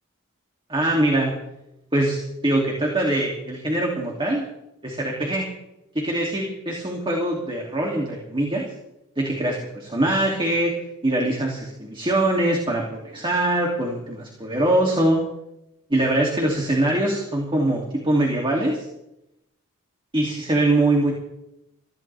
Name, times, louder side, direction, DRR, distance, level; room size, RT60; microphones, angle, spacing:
voice 1, 0.7-1.3 1.9-4.5 4.8-5.5 5.9-8.6 9.2-10.7 11.0-15.2 15.9-18.9 20.1-21.1, right 1 dB, 25° right, -1 dB, 2.8 m, -23 dB
24.0 x 15.0 x 3.5 m, 0.86 s
head